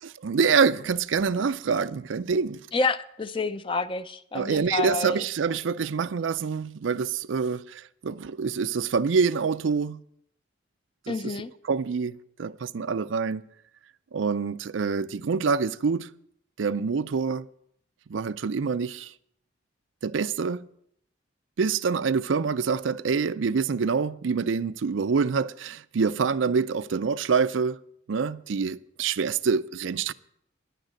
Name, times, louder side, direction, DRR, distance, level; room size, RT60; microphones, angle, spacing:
voice 1, 0.0-2.6 4.3-10.0 11.1-11.4 11.6-13.4 14.1-16.1 16.6-17.4 18.1-19.1 20.0-20.7 21.6-27.8 28.1-30.1, right 5 dB, 90° right, 0.5 m, -26 dB
voice 2, 2.7-5.2 11.1-11.5, left 3 dB, 30° left, 0.5 m, -28 dB
10.5 x 9.1 x 6.3 m
head